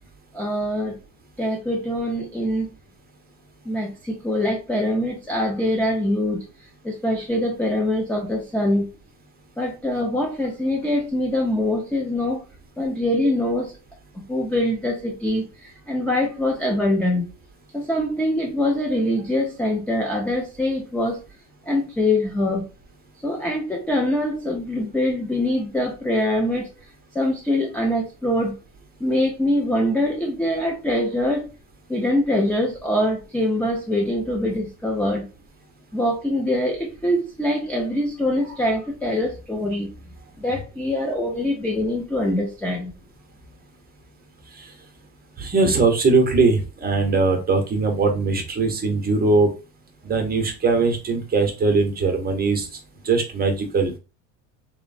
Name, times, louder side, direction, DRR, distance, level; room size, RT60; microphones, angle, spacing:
voice 1, 0.3-1.0 1.4-2.7 3.7-8.9 9.6-12.4 12.8-13.8 14.3-17.2 17.7-21.2 21.7-22.7 23.2-26.7 27.1-28.5 29.0-31.5 31.9-35.3 35.9-39.9 40.4-42.9, left 1 dB, 5° left, -1 dB, 0.3 m, -24 dB
voice 2, 45.4-49.5 50.1-52.7 53.0-53.9, right 3 dB, 25° right, 4 dB, 0.7 m, -20 dB
3.0 x 2.0 x 2.4 m, 0.31 s
supercardioid pair, 105°, 36 cm